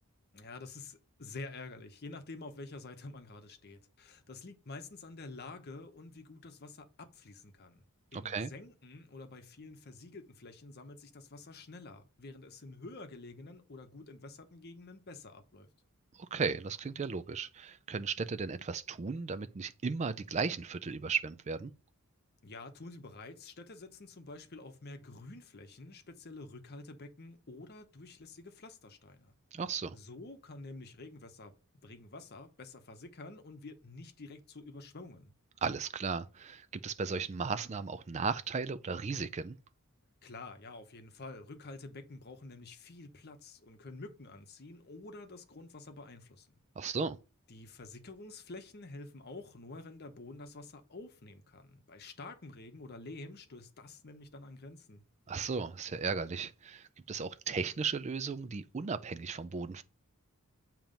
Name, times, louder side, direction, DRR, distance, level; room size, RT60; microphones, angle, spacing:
voice 1, 0.3-7.8 8.1-15.7 22.4-29.3 29.9-31.5 31.8-35.3 40.2-46.5 46.8-47.0 47.5-55.0, left 3 dB, 45° left, 0.9 m, -48 dB
voice 2, 8.1-8.5 16.1-21.7 29.5-30.0 35.6-39.6 46.8-47.2 55.3-59.8, right 5 dB, 30° right, 0.4 m, -35 dB
7.2 x 3.0 x 5.1 m
head